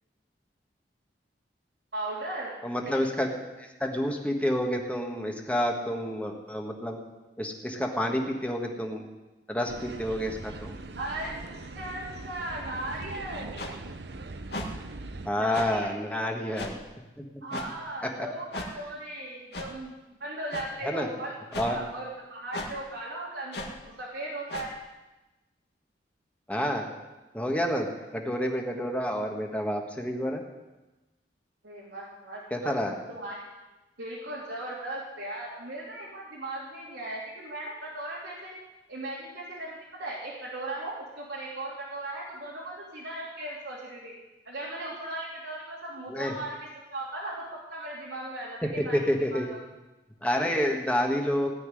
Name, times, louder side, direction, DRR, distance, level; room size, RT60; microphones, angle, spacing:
voice 1, 1.9-2.5 2.8-3.0 11.0-11.3 11.7-13.8 15.4-15.9 17.4-19.9 20.2-21.4 21.6-24.7 31.6-32.7 33.1-33.4 34.0-38.5 38.9-44.1 44.4-46.5 46.9-47.4 47.7-49.6 50.3-50.5, right 1 dB, 90° right, -6 dB, 3.1 m, -37 dB
voice 2, 2.6-3.3 3.6-7.0 7.4-9.0 9.5-10.8 15.2-16.8 18.0-18.1 20.8-21.1 21.6-21.8 26.5-26.9 27.3-30.4 32.5-33.0 46.1-46.3 48.6-49.5 50.2-51.5, equal, 10° left, 2 dB, 1.5 m, -29 dB
stand clear of the closing doors please, 9.7-15.3, right 2 dB, 70° right, 0.8 m, -41 dB
sound 1, 13.6-13.7 14.5-14.7 15.5-15.7 16.6-16.8 17.5-17.7 18.5-18.7 19.5-19.7 20.5-20.7 21.5-21.7 22.5-22.7 23.5-23.7 24.5-24.7, left 2 dB, 65° left, 2.0 m, -36 dB
17.5 x 5.9 x 9.9 m, 1.1 s
head